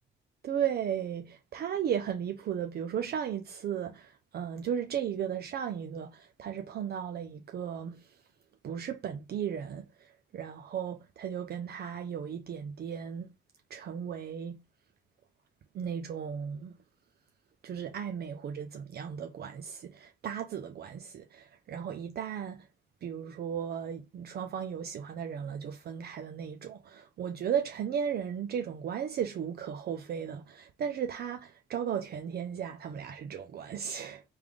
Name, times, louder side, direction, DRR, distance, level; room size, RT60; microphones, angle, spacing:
voice 1, 0.4-8.2 8.6-13.3 13.7-14.6 15.7-16.8 17.6-22.7 23.0-34.2, right 8 dB, 55° right, 0.5 m, -35 dB
3.3 x 2.4 x 3.5 m
cardioid pair, 90°, 20 cm